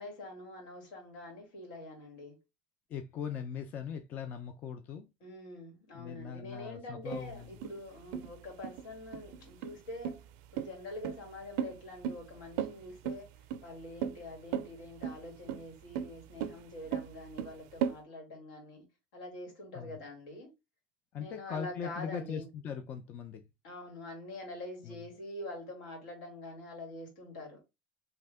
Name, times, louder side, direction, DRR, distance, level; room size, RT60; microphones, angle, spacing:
voice 1, 0.0-2.4 5.2-10.2 10.5-13.3 13.6-18.9 19.1-20.5 21.2-22.5 23.6-27.6, left 1 dB, 85° left, 2.1 m, -45 dB
voice 2, 2.9-5.1 5.9-7.5 19.7-20.0 21.1-23.4 24.8-25.0, left 7 dB, 40° left, 0.4 m, -40 dB
sound 1, 7.1-18.0, right 9 dB, 75° right, 0.4 m, -37 dB
3.3 x 2.8 x 3.3 m
cardioid pair, 145°, 5 cm